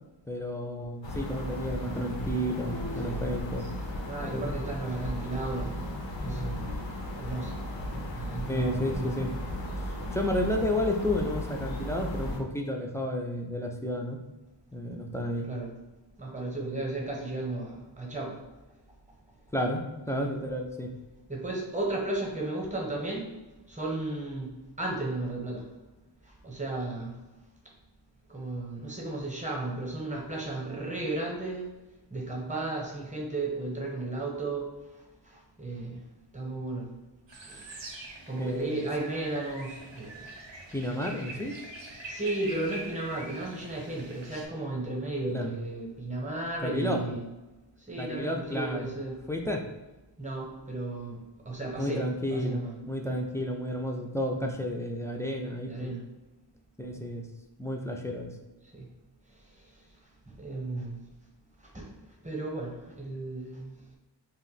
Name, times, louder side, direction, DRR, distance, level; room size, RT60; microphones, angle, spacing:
voice 1, 0.3-3.7 4.2-4.5 8.5-9.3 9.8-14.2 14.7-15.5 19.5-20.9 38.4-38.8 40.7-41.6 45.3-45.5 46.6-47.0 48.0-48.9 49.3-49.7 51.8-55.9 56.8-57.3 57.6-58.3, left 1 dB, 5° left, 2 dB, 0.3 m, -31 dB
sound 1, 1.0-12.4, left 1 dB, 85° left, 0.6 m, -35 dB
voice 2, 4.0-5.9 6.2-6.7 7.2-7.6 7.9-9.2 15.5-15.7 16.2-18.4 20.2-20.3 21.3-23.3 23.7-24.5 24.8-25.7 26.4-27.1 28.3-31.7 32.1-34.7 35.6-36.0 36.3-36.9 37.5-37.7 38.3-40.2 42.1-47.2 47.9-49.2 50.2-51.2 51.4-52.0 52.3-52.7 53.0-53.2 54.4-54.5 55.7-56.0 58.7-58.9 60.4-61.0 61.7-61.9 62.2-63.8, right 2 dB, 15° right, -1 dB, 0.8 m, -34 dB
sound 2, 37.3-44.5, right 2 dB, 80° right, 0.7 m, -44 dB
2.5 x 2.1 x 3.9 m, 1.1 s
wide cardioid pair, 45°, 44 cm